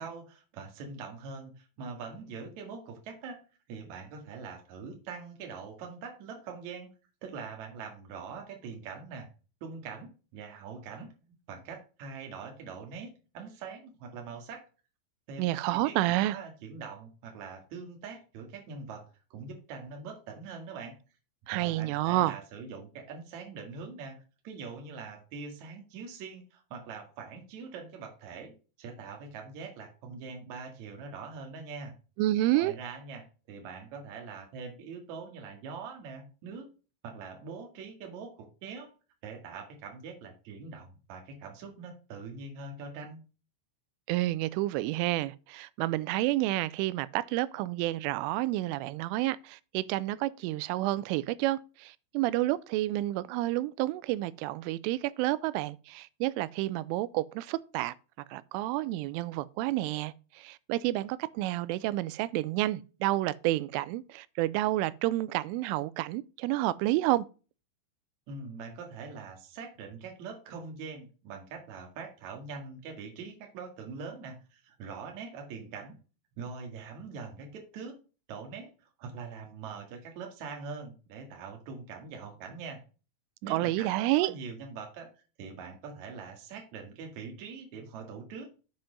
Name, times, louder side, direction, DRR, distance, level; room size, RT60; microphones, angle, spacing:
voice 1, 0.0-3.4 3.7-6.9 7.2-9.3 9.6-11.1 11.5-14.7 15.3-20.9 21.5-31.9 32.5-36.7 37.0-38.9 39.2-43.2 68.3-76.0 76.4-78.0 78.3-82.8 83.4-85.1 85.4-88.5, right 5 dB, 50° right, 2.5 m, -43 dB
voice 2, 15.4-16.4 21.5-22.4 32.2-32.7 44.1-57.9 58.3-67.3 83.5-84.3, right 16 dB, 90° right, 3.1 m, -30 dB
7.6 x 5.8 x 5.1 m
omnidirectional pair, 5.5 m